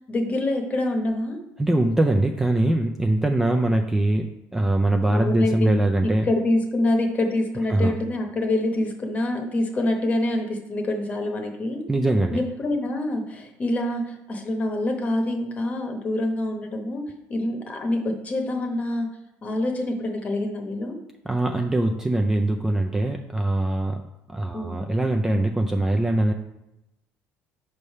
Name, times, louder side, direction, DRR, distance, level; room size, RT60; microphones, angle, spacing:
voice 1, 0.1-1.4 5.1-5.7 6.0-11.8 12.3-17.0 17.3-19.1 19.4-21.0 24.5-24.9, left 1 dB, 30° left, 3 dB, 0.9 m, -26 dB
voice 2, 1.6-6.2 7.7-7.9 11.9-12.4 21.3-24.0 24.3-26.3, right 1 dB, 10° right, 3 dB, 0.3 m, -22 dB
5.3 x 3.3 x 5.5 m, 0.91 s
cardioid pair, 125°, 5 cm